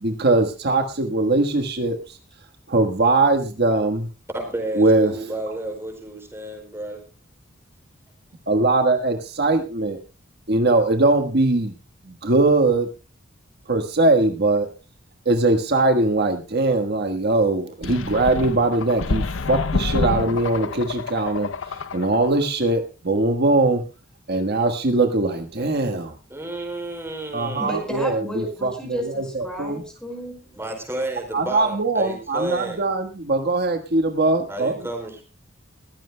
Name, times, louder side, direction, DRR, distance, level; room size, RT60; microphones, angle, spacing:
voice 1, 0.0-2.2 2.7-4.1 4.8-5.1 8.5-10.0 10.5-11.7 12.1-12.9 13.7-14.7 15.2-23.8 24.3-26.1 27.3-29.8 31.3-34.8, right 2 dB, 55° right, 5 dB, 1.4 m, -21 dB
voice 2, 4.3-7.0 26.3-27.8 30.6-32.8 34.5-35.2, right 1 dB, 15° right, 3 dB, 4.9 m, -31 dB
sound 1, 17.8-22.4, left 3 dB, 80° left, 0.7 m, -27 dB
voice 3, 27.6-30.6, equal, 5° left, 3 dB, 5.2 m, -32 dB
21.0 x 15.5 x 2.2 m, 0.33 s
head